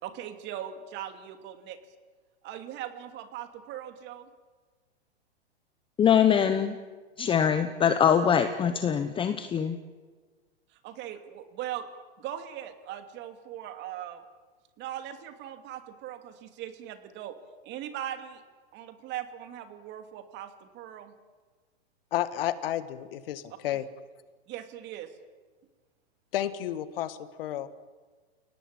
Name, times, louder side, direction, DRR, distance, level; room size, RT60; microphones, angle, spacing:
voice 1, 0.0-1.8 2.4-4.3 10.8-11.9 12.2-14.2 14.8-17.4 17.6-18.4 18.7-21.1 23.7-23.8 24.5-25.1, right 11 dB, 35° right, 8 dB, 2.6 m, -39 dB
voice 2, 6.0-6.8 7.2-9.8, left 8 dB, 15° left, 9 dB, 1.1 m, -23 dB
voice 3, 22.1-23.9 26.3-27.7, left 12 dB, 60° left, 13 dB, 1.8 m, -31 dB
29.0 x 18.0 x 8.9 m, 1.4 s
hypercardioid pair, 130°, 33 cm